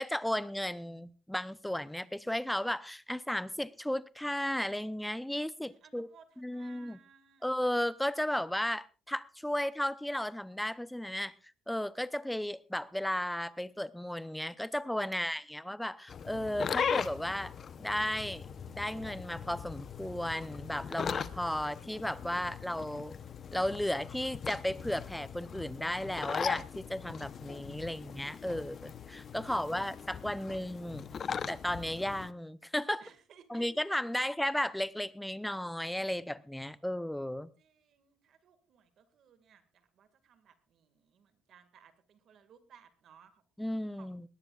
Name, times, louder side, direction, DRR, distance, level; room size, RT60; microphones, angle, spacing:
voice 1, 0.0-6.1 6.4-7.0 7.4-11.3 11.7-17.5 17.8-18.5 18.7-23.2 23.5-31.0 31.5-33.0 33.5-37.5 43.6-44.3, left 1 dB, 5° left, 0.7 m, -34 dB
voice 2, 5.6-7.5 33.0-33.7 34.1-34.4 37.6-43.4 43.9-44.3, right 7 dB, 50° right, 2.0 m, -61 dB
sound 1, 16.1-32.3, left 7 dB, 40° left, 0.8 m, -39 dB
20.0 x 18.0 x 2.4 m
cardioid pair, 140°, 0 cm